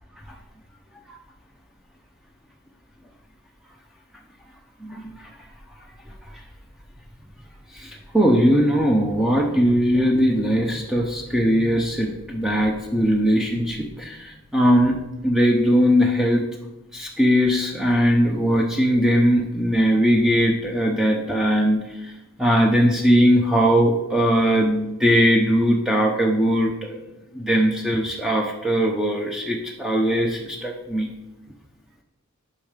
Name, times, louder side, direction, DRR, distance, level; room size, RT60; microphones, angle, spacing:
voice 1, 4.8-5.3 7.7-14.9 15.2-16.4 16.9-22.1 22.4-27.0 27.3-31.1, equal, ahead, 0 dB, 0.7 m, -20 dB
10.5 x 5.4 x 5.1 m, 1.0 s
head